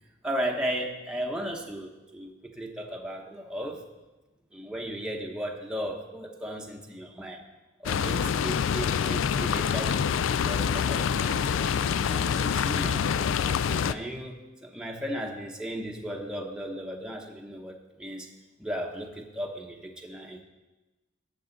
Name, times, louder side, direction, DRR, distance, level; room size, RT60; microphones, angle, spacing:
voice 1, 0.2-3.8 4.5-7.4 7.8-10.0 10.3-11.6 12.0-13.1 13.4-18.3 18.6-20.4, equal, 5° right, 0 dB, 0.9 m, -36 dB
sound 1, 7.9-13.9, left 7 dB, 70° left, 0.3 m, -26 dB
18.0 x 6.9 x 3.9 m, 1.1 s
head